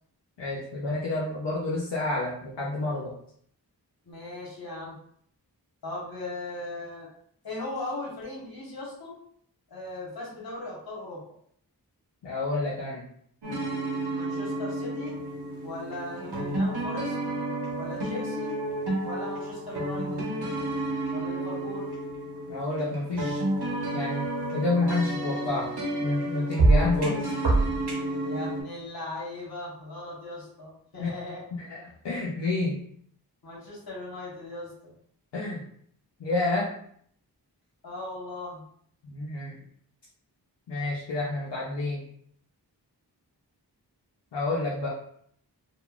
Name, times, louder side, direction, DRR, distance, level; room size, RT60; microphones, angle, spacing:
voice 1, 0.4-3.1 12.2-13.0 22.5-23.4 23.9-25.7 26.0-27.3 31.0-31.1 31.6-32.8 35.3-35.6 36.2-36.7 39.0-39.5 40.7-42.0 44.3-44.9, left 2 dB, 80° left, -5 dB, 0.6 m, -29 dB
voice 2, 4.0-5.0 5.8-7.1 7.4-9.2 9.7-11.2 14.1-15.2 15.6-17.1 17.8-18.5 19.0-20.3 21.1-21.9 28.2-31.4 33.4-34.9 37.8-38.6, left 2 dB, 60° left, -4 dB, 1.2 m, -38 dB
sound 1, 13.4-28.6, right 2 dB, 65° right, 0.8 m, -29 dB
2.9 x 2.2 x 2.3 m, 0.65 s
cardioid pair, 40°, 42 cm